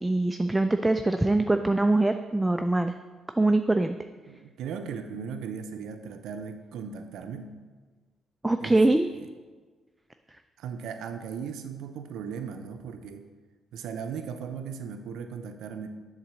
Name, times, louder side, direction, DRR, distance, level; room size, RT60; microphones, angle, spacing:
voice 1, 0.0-2.9 3.4-4.0 8.4-9.1, right 2 dB, 10° right, 7 dB, 0.3 m, -23 dB
voice 2, 4.3-7.6 8.6-9.3 10.6-13.3 13.7-15.9, right 6 dB, 80° right, 6 dB, 0.5 m, -37 dB
7.2 x 4.0 x 6.3 m, 1.4 s
cardioid pair, 90°, 0 cm